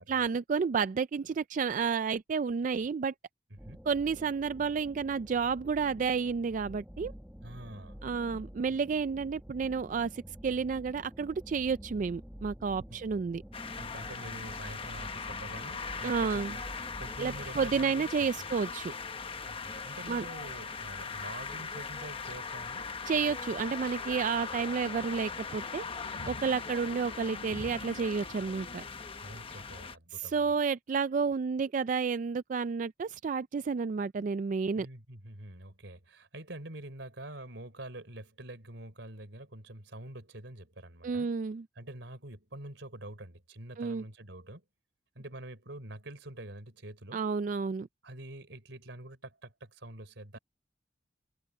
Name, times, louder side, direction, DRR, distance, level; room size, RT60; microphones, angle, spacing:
voice 1, 0.0-3.1 3.9-7.1 8.0-13.4 16.0-16.6 17.2-18.9 20.1-20.2 23.1-25.8 26.3-28.8 30.1-34.9 41.0-41.6 43.8-44.0 47.1-47.9, right 5 dB, 45° right, 0.3 m, -31 dB
sound 1, 3.6-17.9, equal, 5° right, 1.4 m, -48 dB
voice 2, 7.4-8.0 12.9-13.0 13.8-18.3 19.5-23.3 29.2-30.5 34.7-41.3 41.8-44.6 45.2-47.2 48.0-50.4, right 1 dB, 80° right, 3.7 m, -46 dB
sound 2, 13.5-30.0, left 5 dB, 30° left, 1.1 m, -40 dB
sound 3, 23.7-28.8, equal, 70° left, 4.8 m, -51 dB
head